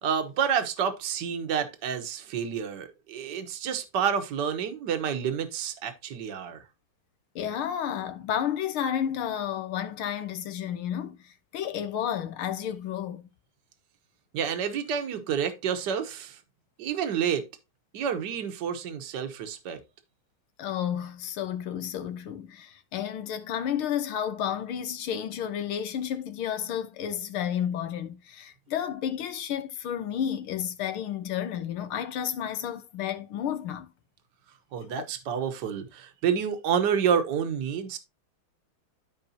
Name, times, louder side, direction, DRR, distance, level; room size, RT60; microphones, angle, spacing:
voice 1, 0.0-6.6 14.3-16.4 16.8-17.5 17.9-19.8 34.7-38.0, right 7 dB, 60° right, 1.6 m, -29 dB
voice 2, 7.4-13.3 20.6-33.9 35.0-35.1, left 9 dB, 90° left, 1.9 m, -31 dB
13.0 x 4.8 x 2.8 m
omnidirectional pair, 2.3 m